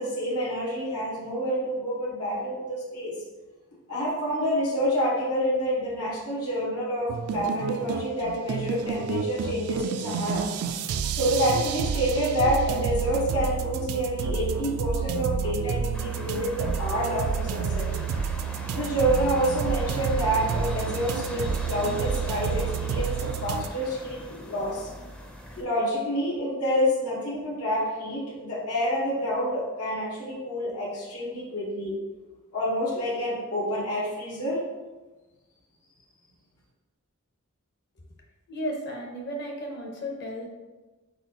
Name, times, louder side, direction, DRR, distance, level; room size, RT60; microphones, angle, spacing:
voice 1, 0.0-3.2 3.9-10.5 11.1-17.9 18.7-24.9 25.6-31.9 32.5-34.7, equal, 90° left, -6 dB, 1.2 m, -28 dB
sound 1, 7.1-23.7, right 7 dB, 75° right, 0.3 m, -30 dB
sound 2, 15.9-25.6, equal, 5° left, 0.4 m, -40 dB
voice 2, 38.5-40.5, equal, 50° left, 0 dB, 0.8 m, -34 dB
4.3 x 4.1 x 2.8 m, 1.2 s
head